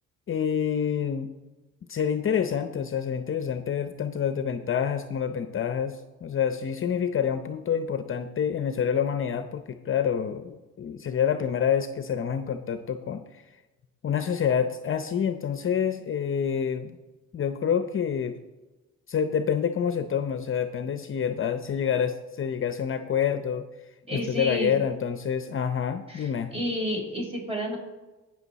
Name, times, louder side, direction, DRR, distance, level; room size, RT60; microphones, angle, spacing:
voice 1, 0.3-1.3 1.9-13.4 14.0-17.0 17.3-18.4 19.1-23.7 24.1-26.5, left 8 dB, 45° left, 9 dB, 0.7 m, -27 dB
voice 2, 24.1-24.8 26.1-27.8, equal, 20° right, 1 dB, 4.0 m, -30 dB
17.5 x 6.3 x 4.1 m, 1.1 s
cardioid pair, 90°, 30 cm